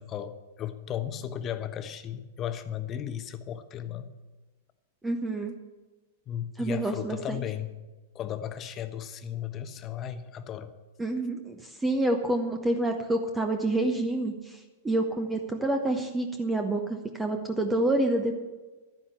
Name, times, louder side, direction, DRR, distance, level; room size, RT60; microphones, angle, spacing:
voice 1, 0.0-4.1 6.3-7.8 8.1-10.7, left 9 dB, 30° left, 10 dB, 1.1 m, -35 dB
voice 2, 5.0-5.5 6.6-7.4 11.0-14.6 14.8-18.4, right 2 dB, 10° right, 5 dB, 1.2 m, -28 dB
12.5 x 10.0 x 7.2 m, 1.2 s
figure-of-eight pair, 100°, 0 cm